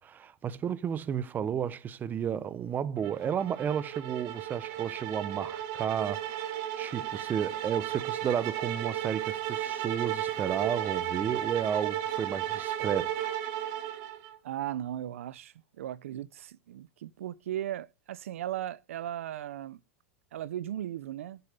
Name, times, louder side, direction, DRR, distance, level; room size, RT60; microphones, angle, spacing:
voice 1, 0.0-13.4, right 8 dB, 25° right, 1.1 m, -32 dB
sound 1, 3.0-14.4, right 11 dB, 55° right, 2.2 m, -34 dB
voice 2, 14.4-19.8 20.3-21.4, right 12 dB, 85° right, 0.7 m, -37 dB
11.0 x 9.1 x 6.8 m
supercardioid pair, 125°, 7 cm